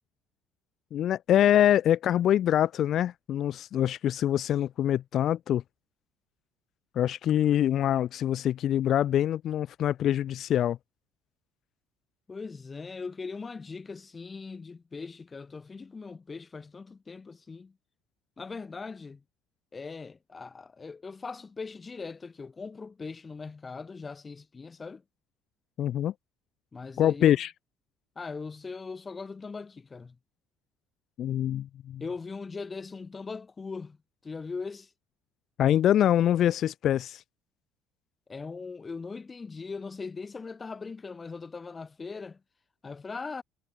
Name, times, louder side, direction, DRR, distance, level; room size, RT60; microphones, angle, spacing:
voice 1, 0.9-5.6 7.0-10.8 25.8-26.1 27.0-27.5 31.2-32.0 35.6-37.2, left 11 dB, 55° left, 0.8 m, -24 dB
voice 2, 12.3-17.7 18.4-19.2 19.7-25.0 26.7-27.4 28.2-30.2 32.0-34.0 34.2-34.9 38.3-42.4 42.8-43.4, left 4 dB, 25° left, 1.2 m, -40 dB
supercardioid pair, 95°, 0 cm